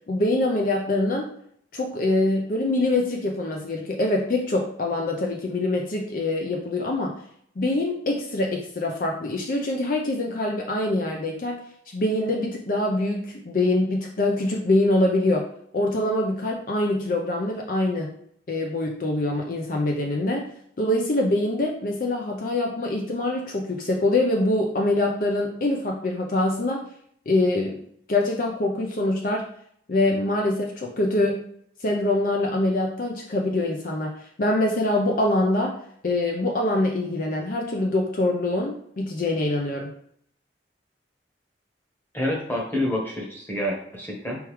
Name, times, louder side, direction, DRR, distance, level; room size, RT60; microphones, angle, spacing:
voice 1, 0.1-1.3 1.7-7.2 7.6-11.6 11.9-15.5 15.7-18.1 18.5-20.5 20.8-26.9 27.3-27.8 28.1-29.5 29.9-31.4 31.8-35.8 36.0-39.9, left 2 dB, 50° left, 0 dB, 0.5 m, -24 dB
voice 2, 42.1-44.4, left 1 dB, 10° left, -2 dB, 1.1 m, -28 dB
4.6 x 3.6 x 3.1 m, 0.66 s
head